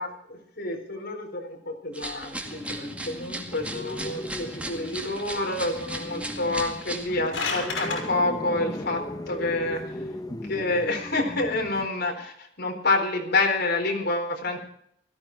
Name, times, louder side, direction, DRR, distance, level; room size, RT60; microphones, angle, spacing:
voice 1, 0.0-9.8 10.5-14.6, left 2 dB, 60° left, 2 dB, 4.3 m, -28 dB
sound 1, 1.9-7.1, right 1 dB, 5° right, 2.1 m, -37 dB
sound 2, 2.4-11.9, left 1 dB, 20° left, 1.1 m, -38 dB
sound 3, 7.0-8.0, left 4 dB, 85° left, 5.3 m, -30 dB
18.0 x 13.5 x 4.7 m, 0.69 s
head